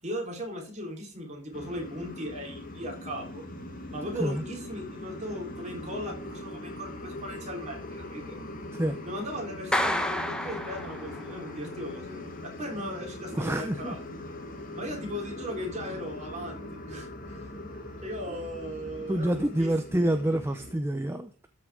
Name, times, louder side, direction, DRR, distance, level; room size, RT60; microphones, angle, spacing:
voice 1, 0.0-3.5 3.9-8.4 9.0-14.0 14.8-17.5 18.0-19.8, equal, 30° right, 1 dB, 3.6 m, -38 dB
sound 1, 1.5-20.7, left 1 dB, 40° left, 2.0 m, -41 dB
Clapping, 9.7-11.5, left 1 dB, 5° left, 1.0 m, -30 dB
voice 2, 13.4-13.9 19.1-21.3, right 1 dB, 10° right, 7 dB, 0.7 m, -27 dB
13.0 x 6.0 x 3.5 m, 0.38 s
head